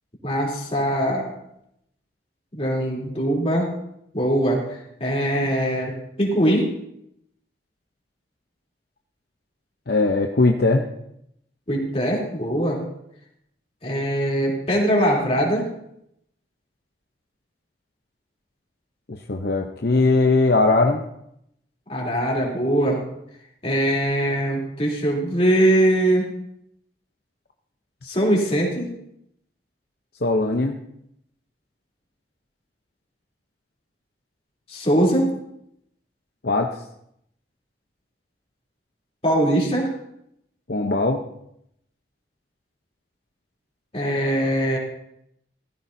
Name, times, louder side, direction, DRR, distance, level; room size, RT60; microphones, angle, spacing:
voice 1, 0.2-1.3 2.5-3.7 4.1-6.7 11.7-12.8 13.8-15.6 21.9-23.0 23.6-26.3 28.0-28.9 34.7-35.3 39.2-39.9 43.9-44.8, right 1 dB, 35° left, -2 dB, 3.3 m, -21 dB
voice 2, 9.9-10.9 19.1-21.0 30.2-30.8 36.4-36.7 40.7-41.2, left 3 dB, 60° left, 3 dB, 0.8 m, -20 dB
17.0 x 14.0 x 2.7 m, 0.77 s
head